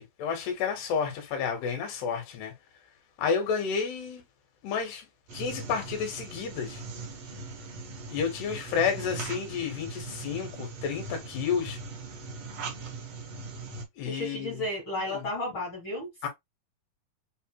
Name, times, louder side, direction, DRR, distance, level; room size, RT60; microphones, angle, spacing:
voice 1, 0.2-2.5 3.2-4.2 4.6-5.1 5.3-6.8 8.1-11.8 14.0-14.7 15.1-15.2 16.2-16.3, left 6 dB, 90° left, 3.4 m, -31 dB
sound 1, 5.3-13.8, right 3 dB, 90° right, 1.3 m, -40 dB
voice 2, 14.0-16.3, left 2 dB, 50° left, 1.5 m, -33 dB
6.6 x 2.9 x 2.2 m
omnidirectional pair, 4.6 m